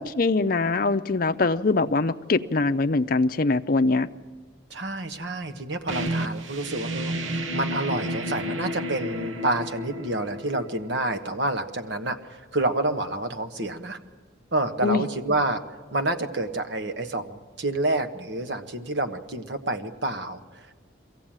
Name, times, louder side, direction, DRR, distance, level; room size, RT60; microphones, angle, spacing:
voice 1, 0.0-4.1 14.8-15.1, left 3 dB, 45° left, 9 dB, 0.6 m, -23 dB
voice 2, 4.7-12.2 12.5-14.0 14.5-15.6 15.9-20.6, right 2 dB, 65° right, 6 dB, 1.3 m, -28 dB
sound 1, 5.9-11.3, equal, 85° right, 1.0 m, -32 dB
22.5 x 16.0 x 8.9 m, 1.4 s
head